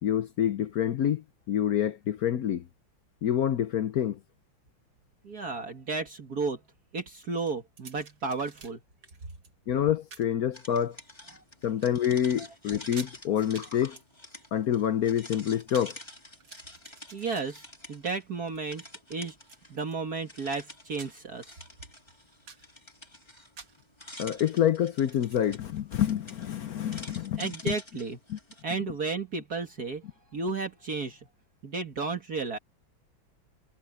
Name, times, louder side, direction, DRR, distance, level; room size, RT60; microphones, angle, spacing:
voice 1, 0.0-2.7 3.2-4.2 9.7-11.0 11.6-14.0 14.5-16.0 24.2-27.8 28.3-28.4, left 10 dB, 65° left, 1.0 m, -27 dB
voice 2, 5.2-6.6 6.9-8.8 17.1-18.8 19.1-19.4 19.7-21.4 27.4-28.2 28.6-30.0 30.3-31.2 31.6-32.6, right 4 dB, 50° right, 2.2 m, -33 dB
sound 1, 7.4-8.7 9.0-9.5 10.1-10.3 10.9-11.5 11.8-12.2 12.4-12.5 12.8-13.2 13.5-13.7 14.0-16.0 16.3-18.1 18.4-18.8 19.5-20.2 20.7-21.4 21.7-21.8 22.2-22.7 23.6-23.9 25.0-25.5, right 5 dB, 80° right, 3.2 m, -50 dB
sound 2, 10.5-18.2 18.5-19.8 20.2-28.6, left 1 dB, 15° left, 3.1 m, -48 dB
omnidirectional pair, 2.1 m